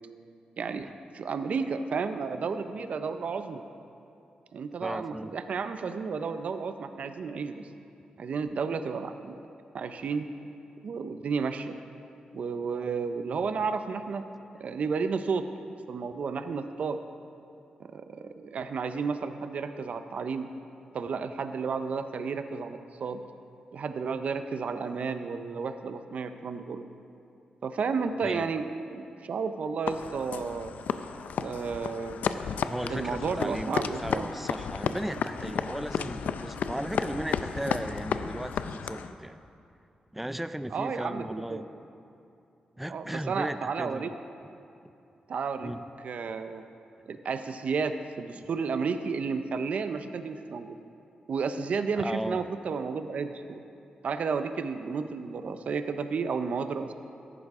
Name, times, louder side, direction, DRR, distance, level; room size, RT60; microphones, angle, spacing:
voice 1, 0.6-3.6 4.5-7.6 8.2-9.4 9.7-10.3 10.8-11.7 12.3-14.3 14.6-15.5 15.9-17.0 17.8-20.5 20.9-23.2 23.7-26.9 27.6-28.6 28.9-30.7 31.4-32.2 32.9-34.3 40.7-41.2 41.5-41.6 42.9-44.1 45.3-45.7 46.0-46.6 47.1-50.8 51.3-53.6 54.0-56.9, right 5 dB, 60° right, 9 dB, 0.5 m, -32 dB
voice 2, 4.8-5.3 28.2-28.5 32.7-39.4 40.1-41.7 42.8-44.1 45.6-45.8 52.0-52.5, right 1 dB, 5° right, 13 dB, 0.3 m, -36 dB
sound 1, 29.9-39.1, left 6 dB, 85° left, 0.4 m, -33 dB
14.5 x 11.0 x 3.6 m, 2.7 s
wide cardioid pair, 120°, 3 cm